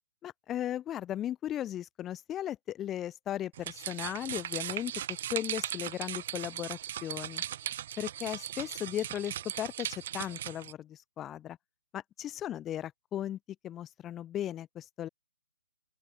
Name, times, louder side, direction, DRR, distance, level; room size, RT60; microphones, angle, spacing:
voice 1, 0.2-7.4 8.0-11.6 11.9-13.4 13.6-15.1, left 11 dB, 20° left, 2.3 m, -37 dB
sound 1, 3.5-10.7, right 11 dB, 50° right, 3.1 m, -38 dB
open air
hypercardioid pair, 140°, 0 cm